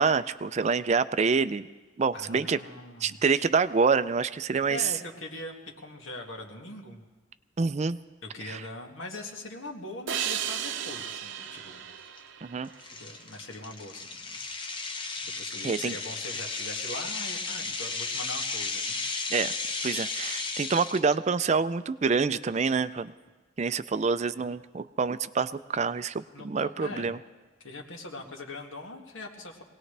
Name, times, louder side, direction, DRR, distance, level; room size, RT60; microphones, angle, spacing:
voice 1, 0.0-1.7 2.0-2.6 3.0-4.9 7.6-8.0 8.5-8.6 12.4-12.7 15.6-15.9 19.3-19.5 19.8-23.1 23.6-27.2, right 5 dB, 35° right, 13 dB, 0.4 m, -26 dB
voice 2, 2.1-3.2 4.7-7.0 8.2-11.8 12.9-14.6 15.2-19.4 26.3-27.2 27.6-29.6, left 2 dB, 85° left, 1 dB, 2.1 m, -41 dB
sound 1, 10.1-13.4, right 9 dB, 70° right, 0.7 m, -35 dB
sound 2, 10.9-11.0 11.5-11.7 12.2-12.3 12.8-21.1, left 4 dB, 25° left, 0.9 m, -34 dB
23.5 x 18.5 x 3.4 m, 1.3 s
head